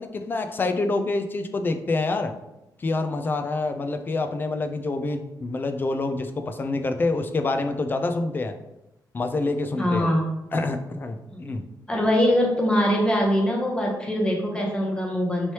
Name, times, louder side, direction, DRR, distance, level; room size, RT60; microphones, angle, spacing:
voice 1, 0.0-2.3 2.8-8.5 9.1-10.1 10.5-11.6, left 3 dB, 30° left, 7 dB, 0.3 m, -27 dB
voice 2, 9.8-10.3 11.3-11.4 11.9-15.5, equal, 15° left, -2 dB, 0.8 m, -23 dB
3.1 x 3.1 x 2.8 m, 0.90 s
cardioid pair, 125°, 7 cm